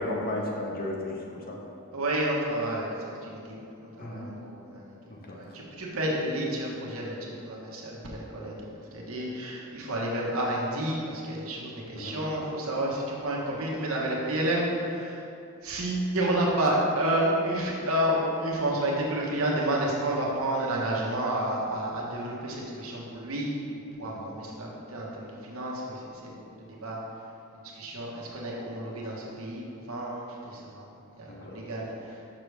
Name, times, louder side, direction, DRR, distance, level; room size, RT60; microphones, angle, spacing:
voice 1, 0.0-1.6 4.0-4.3 5.1-5.4 8.4-8.8 12.0-12.2 24.0-24.3 31.3-31.6, left 1 dB, 40° left, -1 dB, 0.8 m, -35 dB
voice 2, 1.9-4.9 5.3-8.5 8.9-15.2 15.6-27.0 27.5-32.2, right 1 dB, 65° right, -3 dB, 1.1 m, -30 dB
6.3 x 6.0 x 3.3 m, 2.7 s
head